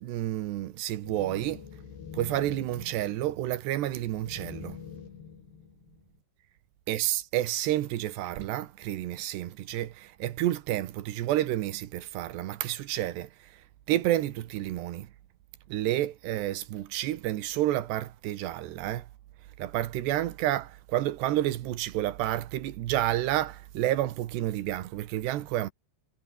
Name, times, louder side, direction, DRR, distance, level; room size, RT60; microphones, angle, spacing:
voice 1, 0.0-1.6 2.1-4.8 6.9-13.3 13.9-15.1 15.7-19.1 19.6-25.7, right 14 dB, 85° right, 3.5 m, -30 dB
sound 1, 1.0-6.2, left 7 dB, 80° left, 5.8 m, -46 dB
omnidirectional pair, 4.7 m